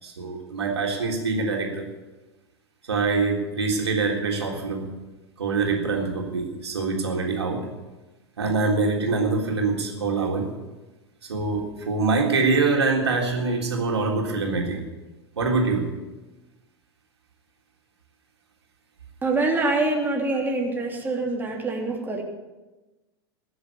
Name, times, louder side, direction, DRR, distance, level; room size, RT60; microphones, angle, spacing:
voice 1, 0.0-1.8 2.9-4.9 5.4-7.7 8.4-10.5 11.3-14.8 15.4-15.8, right 3 dB, 75° right, 0 dB, 3.6 m, -24 dB
voice 2, 19.2-22.2, right 2 dB, 15° right, 0 dB, 3.1 m, -25 dB
21.5 x 7.8 x 8.4 m, 1.1 s
figure-of-eight pair, 90°, 14 cm